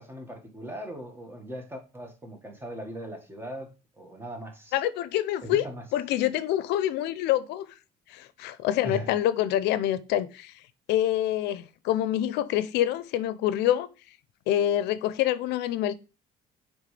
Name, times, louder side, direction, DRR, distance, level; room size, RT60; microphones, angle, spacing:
voice 1, 0.0-4.8 5.4-5.8 8.8-9.1, right 1 dB, 15° right, 1.6 m, -39 dB
voice 2, 4.7-5.6 5.9-7.7 8.1-10.5 10.9-13.9 14.5-15.9, left 12 dB, 85° left, 0.5 m, -26 dB
8.9 x 3.5 x 3.2 m
cardioid pair, 110°, 17 cm